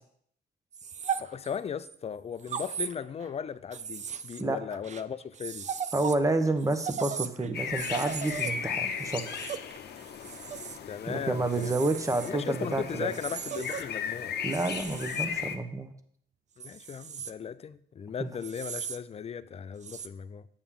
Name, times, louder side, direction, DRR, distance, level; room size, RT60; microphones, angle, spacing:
sound 1, 0.7-1.9 2.4-3.3 3.7-6.2 6.5-10.8 11.5-12.3 13.1-13.8 14.5-15.3 16.6-17.3 18.4-19.0 19.8-20.1, right 7 dB, 40° right, 0.4 m, -37 dB
voice 1, 1.2-5.7 10.9-11.8 12.2-14.3 16.6-20.5, left 7 dB, 35° left, 0.4 m, -37 dB
voice 2, 5.9-9.4 11.1-13.1 14.4-15.9 18.2-18.3, right 2 dB, 15° right, 0.9 m, -29 dB
sound 2, 7.5-15.6, left 7 dB, 60° left, 0.7 m, -36 dB
7.0 x 6.9 x 3.6 m
cardioid pair, 75°, 19 cm